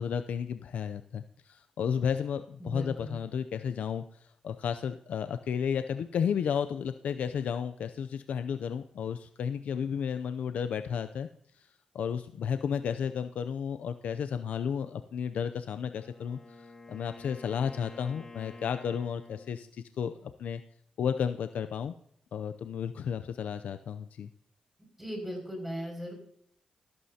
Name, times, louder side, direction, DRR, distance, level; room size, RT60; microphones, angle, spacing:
voice 1, 0.0-4.0 4.4-11.3 11.9-20.6 21.0-21.9 22.3-24.3, left 7 dB, 80° left, 9 dB, 0.5 m, -33 dB
voice 2, 2.6-3.2 25.0-26.1, equal, 5° right, 2 dB, 5.9 m, -37 dB
Wind instrument woodwind instrument, 15.8-19.7, left 3 dB, 30° left, 2.0 m, -50 dB
14.5 x 13.5 x 2.8 m, 0.67 s
cardioid pair, 95°, 2 cm